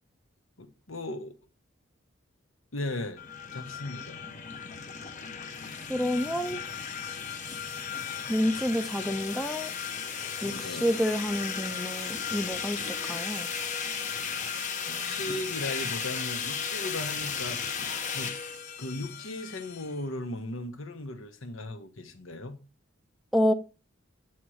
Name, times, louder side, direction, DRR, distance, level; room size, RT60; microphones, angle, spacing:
voice 1, 0.6-1.4 2.7-3.2 3.5-4.2 4.6-4.7 10.4-10.9 14.9-18.4 18.8-22.6, left 1 dB, 75° left, 1.1 m, -37 dB
sound 1, 3.2-19.9, left 6 dB, 40° left, 0.8 m, -35 dB
voice 2, 5.9-6.6 8.3-9.7 10.4-12.8 13.1-13.5 14.2-14.3 23.3-23.5, equal, ahead, 0.5 m, -28 dB
8.5 x 3.0 x 6.3 m
head